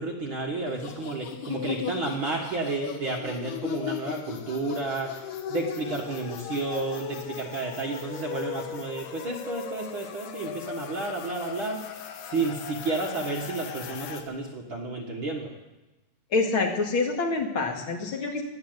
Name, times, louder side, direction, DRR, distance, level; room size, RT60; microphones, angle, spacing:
voice 1, 0.0-12.0 12.3-15.5, right 3 dB, 65° right, -1 dB, 1.2 m, -31 dB
sound 1, 0.7-14.2, left 8 dB, 80° left, 3.1 m, -38 dB
voice 2, 16.3-18.4, left 3 dB, 40° left, 2 dB, 2.2 m, -26 dB
17.5 x 10.5 x 7.9 m, 1.1 s
omnidirectional pair, 4.6 m